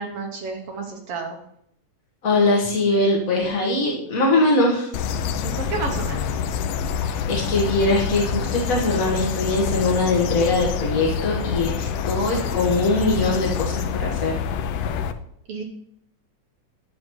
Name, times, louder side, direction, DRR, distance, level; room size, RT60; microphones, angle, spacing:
voice 1, 0.0-1.4 5.4-6.4 15.5-15.6, right 4 dB, 65° right, 2 dB, 1.6 m, -31 dB
voice 2, 2.2-4.9 7.0-14.4, left 2 dB, 45° left, -3 dB, 1.1 m, -22 dB
sound 1, 4.9-15.1, left 7 dB, 80° left, 1.5 m, -26 dB
10.5 x 7.6 x 3.1 m, 0.72 s
omnidirectional pair, 3.4 m